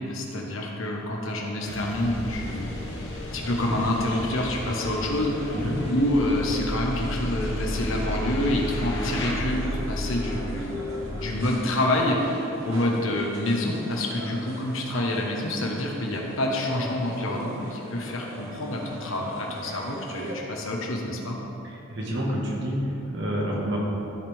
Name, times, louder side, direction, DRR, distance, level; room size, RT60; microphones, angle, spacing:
voice 1, 0.1-2.7 3.3-5.6 5.9-10.9 11.1-21.4, left 1 dB, 75° left, -1 dB, 1.4 m, -27 dB
sound 1, 1.6-9.3, left 1 dB, 60° left, 1.4 m, -39 dB
sound 2, 1.7-20.4, equal, 75° right, 1.2 m, -42 dB
sound 3, 2.0-11.5, left 1 dB, 25° left, 0.5 m, -33 dB
voice 2, 21.6-23.8, equal, 60° right, -3 dB, 1.7 m, -28 dB
14.0 x 5.2 x 3.6 m, 3.0 s
head